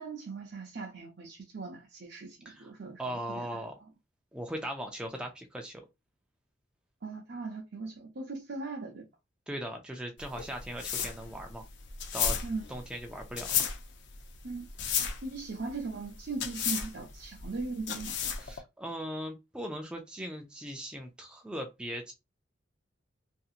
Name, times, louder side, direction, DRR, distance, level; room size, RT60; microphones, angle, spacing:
voice 1, 0.0-3.5 7.0-9.1 12.4-12.7 14.4-14.7 15.2-18.2, right 3 dB, 60° right, 0.6 m, -39 dB
voice 2, 3.0-3.7 4.3-5.8 9.5-11.6 12.1-12.4 12.7-13.6 18.4-22.1, equal, 5° right, 0.3 m, -39 dB
sound 1, 10.2-18.6, left 7 dB, 65° left, 0.5 m, -33 dB
2.7 x 2.6 x 2.4 m
head